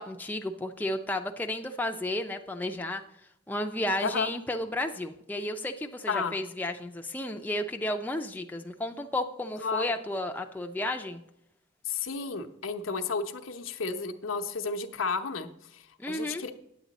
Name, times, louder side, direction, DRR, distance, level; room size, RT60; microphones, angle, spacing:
voice 1, 0.0-3.0 3.5-11.2 16.0-16.4, left 1 dB, 10° left, 4 dB, 0.4 m, -32 dB
voice 2, 9.6-9.9 11.9-16.5, left 4 dB, 80° left, 7 dB, 0.7 m, -32 dB
9.2 x 8.1 x 4.1 m, 0.78 s
head